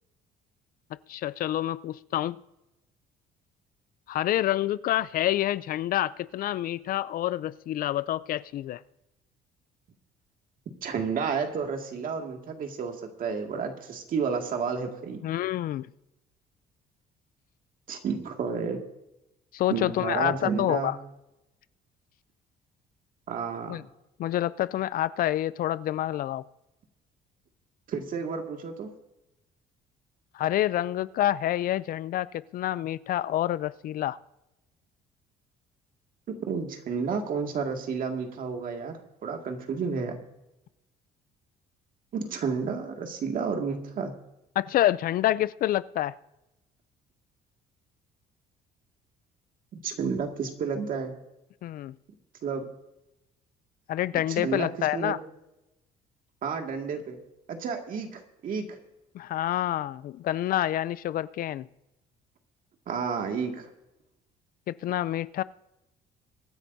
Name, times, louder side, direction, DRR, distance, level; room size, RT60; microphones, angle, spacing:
voice 1, 1.1-2.4 4.1-8.8 15.2-15.9 19.5-21.0 23.7-23.8 24.2-26.4 30.3-34.2 44.6-46.1 51.6-51.9 53.9-55.2 59.1-61.7 64.7-65.4, left 13 dB, 60° left, 18 dB, 0.4 m, -27 dB
voice 2, 10.8-15.2 17.9-18.8 19.7-20.9 23.3-23.9 27.9-28.9 36.3-40.2 42.1-44.1 49.7-51.1 52.4-52.6 54.3-55.2 56.4-57.2 57.5-58.8 62.9-63.7, right 5 dB, 55° right, 3 dB, 2.1 m, -31 dB
24.0 x 10.0 x 2.7 m, 0.93 s
cardioid pair, 110°, 17 cm